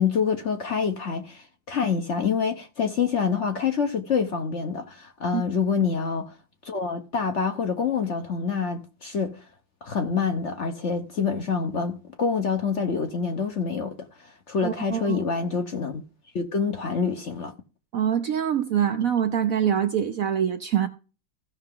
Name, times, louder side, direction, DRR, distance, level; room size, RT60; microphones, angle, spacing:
voice 1, 0.0-6.3 6.6-9.4 9.8-16.0 16.3-17.5, left 6 dB, 50° left, 0.9 m, -26 dB
voice 2, 14.6-15.2 17.9-20.9, right 9 dB, 65° right, 0.9 m, -24 dB
16.0 x 5.7 x 3.7 m
omnidirectional pair, 2.0 m